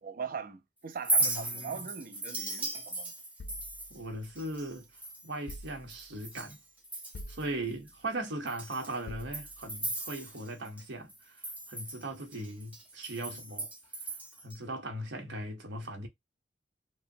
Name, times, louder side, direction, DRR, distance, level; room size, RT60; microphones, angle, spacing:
voice 1, 0.0-3.1, right 6 dB, 50° right, 0.5 m, -41 dB
Chink clink, 0.9-6.6 6.8-7.4 7.9-8.0 8.5-10.8 11.1-14.6, right 2 dB, 10° right, 0.7 m, -36 dB
voice 2, 1.2-1.9 3.9-4.9 5.2-6.6 7.3-11.4 11.7-13.7 14.4-16.1, right 1 dB, 85° right, 1.0 m, -39 dB
sound 1, 3.4-4.8 5.5-6.3 7.1-8.0 9.1-9.9, left 1 dB, 60° left, 0.5 m, -48 dB
3.0 x 2.1 x 2.6 m
head